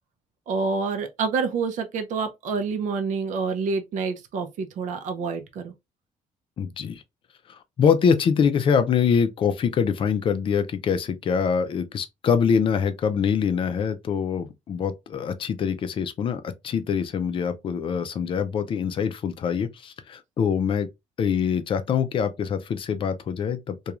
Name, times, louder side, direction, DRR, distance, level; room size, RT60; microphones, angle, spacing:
voice 1, 0.5-5.7, right 5 dB, 65° right, 0.5 m, -27 dB
voice 2, 6.6-7.0 7.5-20.9 21.2-23.8, left 7 dB, 40° left, 0.4 m, -24 dB
2.9 x 2.3 x 2.3 m
cardioid pair, 145°, 14 cm